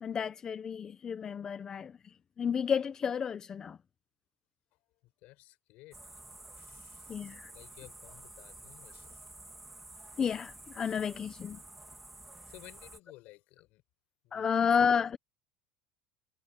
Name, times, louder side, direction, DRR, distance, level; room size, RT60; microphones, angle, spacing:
voice 1, 0.0-3.8 7.1-7.5 10.2-11.6 14.3-15.2, left 7 dB, 20° left, 0.5 m, -31 dB
voice 2, 4.7-9.3 12.5-13.8 14.2-14.7, left 20 dB, 55° left, 4.5 m, -56 dB
sound 1, 5.9-13.0, right 2 dB, 5° right, 2.0 m, -51 dB
cardioid pair, 160°, 3 cm